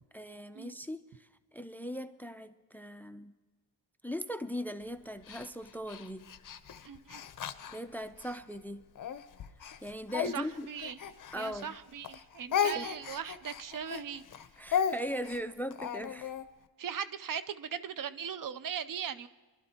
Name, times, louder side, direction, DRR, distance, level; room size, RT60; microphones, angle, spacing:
voice 1, 0.1-1.3 1.5-3.3 4.0-6.3 7.7-8.8 9.8-10.7 11.3-11.8 12.5-12.9 14.6-16.3, equal, 5° left, 0.5 m, -39 dB
Speech, 5.3-8.4 8.9-11.8 12.0-16.4, left 7 dB, 55° left, 0.7 m, -35 dB
voice 2, 6.8-7.2 10.3-11.0 11.3-14.2 16.8-19.3, right 8 dB, 60° right, 0.6 m, -39 dB
23.0 x 12.0 x 2.9 m
cardioid pair, 90°, 37 cm